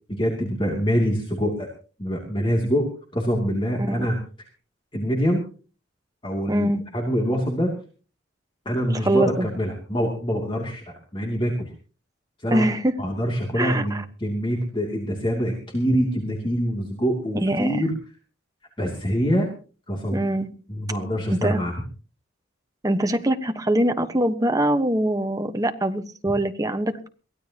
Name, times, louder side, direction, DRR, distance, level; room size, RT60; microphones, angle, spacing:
voice 1, 0.1-1.7 2.0-4.2 4.9-5.4 6.2-7.7 8.6-10.8 11.1-11.7 12.4-12.6 13.0-17.9 18.8-19.5 19.9-20.2 20.7-21.7, equal, 25° left, 0 dB, 2.7 m, -25 dB
voice 2, 6.5-6.8 9.0-9.5 12.5-12.9 13.5-14.0 17.4-17.9 20.1-20.5 21.3-21.6 22.8-27.1, right 1 dB, 15° right, 7 dB, 1.2 m, -23 dB
23.0 x 16.0 x 2.9 m, 0.38 s
head